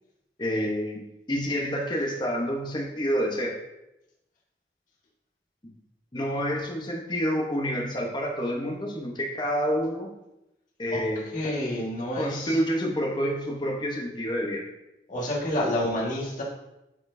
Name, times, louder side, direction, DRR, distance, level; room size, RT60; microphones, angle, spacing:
voice 1, 0.4-1.0 1.3-3.6 6.1-10.1 10.8-11.3 12.2-14.7, equal, 25° left, 0 dB, 1.0 m, -28 dB
voice 2, 11.3-12.6 15.1-16.4, left 1 dB, 45° left, -4 dB, 1.7 m, -28 dB
11.5 x 4.4 x 2.7 m, 0.90 s
head